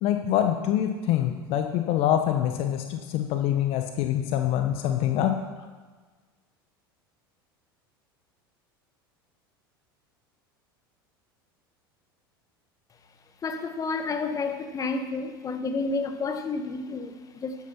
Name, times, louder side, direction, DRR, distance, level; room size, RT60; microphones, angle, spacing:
voice 1, 0.0-5.4, left 11 dB, 50° left, 1.0 m, -25 dB
voice 2, 13.4-17.5, left 4 dB, 30° left, 1.3 m, -30 dB
14.0 x 9.9 x 4.3 m
hypercardioid pair, 80°, 12 cm